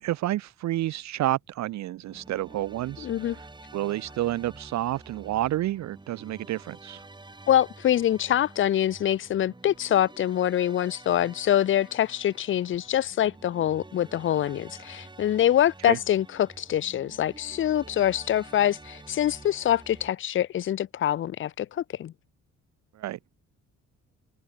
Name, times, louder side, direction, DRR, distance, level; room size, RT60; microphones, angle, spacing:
voice 1, 0.0-3.5 3.7-7.1 15.8-16.0 23.0-23.2, right 14 dB, 65° right, 0.6 m, -30 dB
sound 1, 2.0-20.1, right 2 dB, 15° right, 2.9 m, -49 dB
voice 2, 3.0-3.4 7.5-22.1, left 11 dB, 45° left, 0.5 m, -25 dB
cardioid pair, 90°, 30 cm